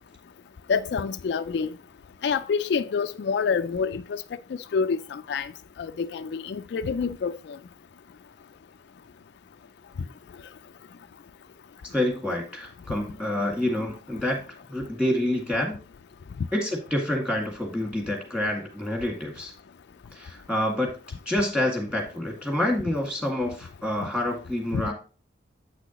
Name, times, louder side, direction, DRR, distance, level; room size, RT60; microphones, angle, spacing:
voice 1, 0.7-1.7 2.2-4.2 4.5-5.5 5.8-7.6 24.7-24.8, left 5 dB, 65° left, 0.3 m, -27 dB
voice 2, 11.9-14.4 14.7-15.8 16.5-19.5 20.1-20.9 21.3-24.9, left 1 dB, 5° right, 2.0 m, -27 dB
8.2 x 6.1 x 3.0 m
head